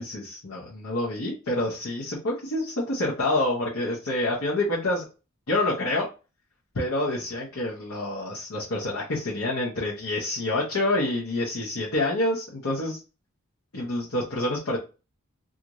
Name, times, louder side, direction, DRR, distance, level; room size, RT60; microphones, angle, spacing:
voice 1, 0.0-5.0 5.5-6.1 6.7-13.0 13.7-14.8, left 1 dB, 75° left, -5 dB, 0.8 m, -27 dB
2.5 x 2.5 x 2.9 m, 0.31 s
head